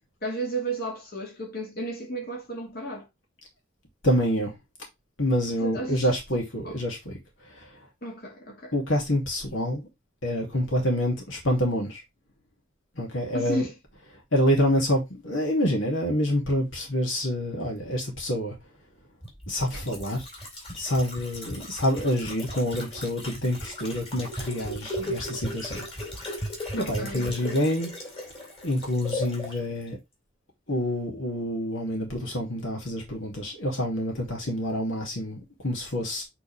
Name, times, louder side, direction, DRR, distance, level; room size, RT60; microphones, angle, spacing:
voice 1, 0.2-3.1 5.6-6.1 6.6-6.7 8.0-8.7 13.3-13.7 26.8-27.6, right 1 dB, 50° left, 2.7 m, -33 dB
voice 2, 4.0-4.5 5.2-7.2 7.4-7.7 8.7-9.9 10.2-12.0 13.0-13.7 14.3-18.5 19.5-20.2 20.7-25.8 26.7-27.9 28.6-30.0 30.7-36.2, equal, 70° left, 2.7 m, -27 dB
sound 1, 19.2-29.6 29.9-30.0, equal, 30° left, 3.5 m, -36 dB
8.5 x 4.1 x 3.4 m
head